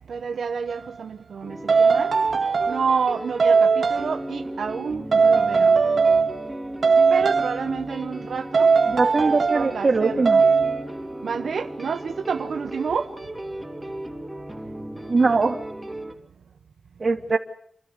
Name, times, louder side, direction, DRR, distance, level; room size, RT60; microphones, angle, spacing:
voice 1, 0.1-2.1 2.7-5.8 7.1-8.7 9.2-10.3 11.2-13.1, right 6 dB, 85° right, 1.0 m, -29 dB
sound 1, 0.7-0.9 1.7-2.9 3.4-4.1 5.1-6.5 6.8-7.7 8.5-9.7 10.3-10.8, right 5 dB, 65° right, 1.9 m, -19 dB
sound 2, 1.4-16.1, right 1 dB, 5° right, 3.2 m, -36 dB
voice 2, 8.9-10.4 15.0-15.6 17.0-17.4, right 3 dB, 45° right, 2.7 m, -21 dB
29.0 x 13.0 x 7.9 m
wide cardioid pair, 95°, 0 cm